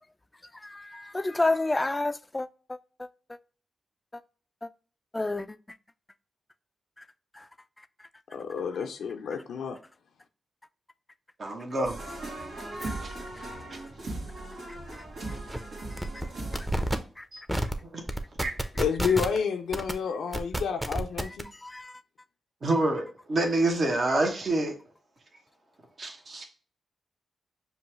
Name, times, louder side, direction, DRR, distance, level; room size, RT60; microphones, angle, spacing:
voice 1, 0.6-3.1 4.6-4.7 5.1-5.6 7.4-7.5 16.0-16.1 17.2-17.3 21.6-22.0, left 2 dB, 25° left, 0.3 m, -30 dB
voice 2, 8.3-9.8 18.8-21.5, left 6 dB, 80° left, 0.5 m, -30 dB
voice 3, 11.4-12.0 12.8-13.1 13.5-13.8 17.3-17.4 17.8-18.0 18.4-18.5 22.6-24.8 26.0-26.5, right 2 dB, 55° right, 1.1 m, -28 dB
sound 1, 11.8-17.0, right 2 dB, 75° right, 1.5 m, -38 dB
sound 2, 14.9-15.0 15.3-15.6 16.0-16.3 16.5-17.0 17.5-17.7 18.1-19.4 19.7-19.9 20.3-21.4, right 1 dB, 15° right, 0.7 m, -29 dB
5.4 x 2.3 x 3.1 m
supercardioid pair, 40°, 0 cm